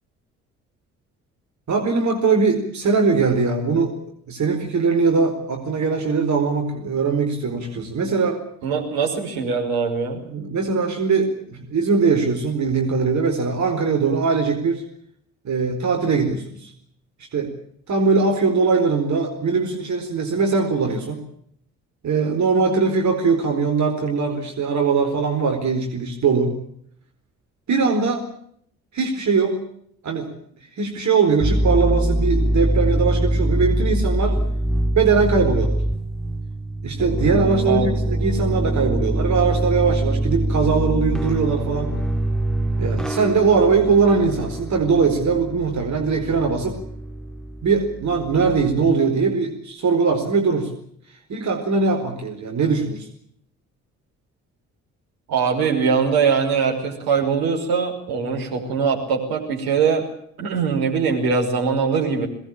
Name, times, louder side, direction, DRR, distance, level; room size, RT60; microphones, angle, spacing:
voice 1, 1.7-4.0 4.3-8.4 10.3-14.8 15.4-16.7 17.3-17.5 17.9-21.2 22.0-26.5 27.7-28.2 28.9-29.6 30.0-30.3 30.8-34.4 34.9-35.8 36.8-41.9 42.8-46.8 47.6-50.7 51.3-53.1, right 4 dB, 45° right, 3 dB, 4.4 m, -21 dB
voice 2, 8.6-10.2 37.7-37.9 55.3-60.1 60.4-62.3, right 5 dB, 60° right, 2 dB, 5.5 m, -22 dB
sound 1, 31.4-48.8, right 1 dB, ahead, 3.1 m, -24 dB
23.5 x 19.5 x 8.7 m, 0.68 s
figure-of-eight pair, 45°, 40 cm